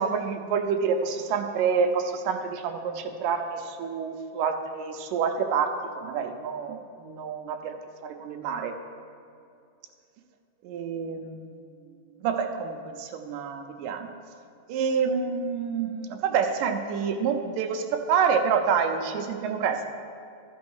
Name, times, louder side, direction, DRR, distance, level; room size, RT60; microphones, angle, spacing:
voice 1, 0.0-8.7 10.6-11.5 12.2-14.1 14.7-19.9, right 6 dB, 80° right, 5 dB, 2.2 m, -28 dB
14.0 x 6.2 x 4.8 m, 2.5 s
omnidirectional pair, 4.0 m